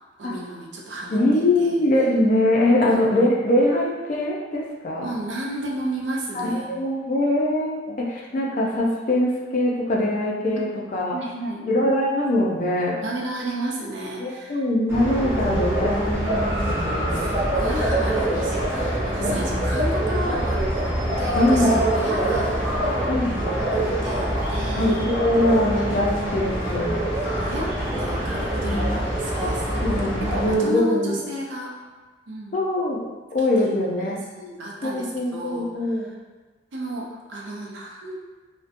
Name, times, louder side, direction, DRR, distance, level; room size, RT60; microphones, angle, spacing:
voice 1, 0.2-1.8 2.7-3.0 5.0-6.7 7.9-8.0 11.1-11.6 13.0-14.6 17.1-20.6 21.2-22.6 23.5-25.0 27.2-27.7 28.0-30.0 30.3-31.7 32.3-32.6 33.4-34.0 34.4-36.2 36.7-38.1, right 1 dB, 80° right, -2 dB, 0.5 m, -33 dB
voice 2, 1.1-5.1 6.3-11.2 11.7-13.0 14.2-17.2 19.2-19.6 21.3-21.8 23.1-23.4 24.7-27.0 28.6-28.8 29.8-31.1 32.5-33.1 33.3-34.2 34.8-36.1, left 1 dB, 45° left, -3 dB, 0.4 m, -22 dB
sound 1, 14.9-30.6, right 1 dB, 15° right, 0.7 m, -24 dB
2.6 x 2.1 x 2.5 m, 1.3 s
head